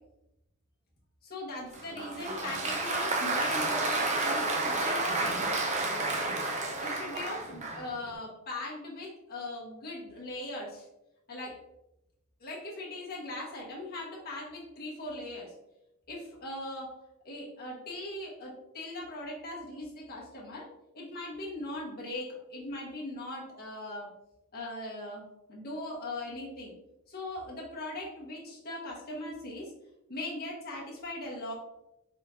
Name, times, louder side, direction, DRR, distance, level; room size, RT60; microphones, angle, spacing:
voice 1, 1.2-5.3 6.8-10.9 11.3-11.6 12.4-15.5 16.1-16.9 17.2-20.7 20.9-24.1 24.5-25.2 25.5-26.8 27.1-29.7 30.1-31.5, left 1 dB, 45° left, -4 dB, 1.1 m, -40 dB
Applause, 1.7-7.9, right 2 dB, 35° right, 0.6 m, -30 dB
4.3 x 3.9 x 2.5 m, 0.86 s
head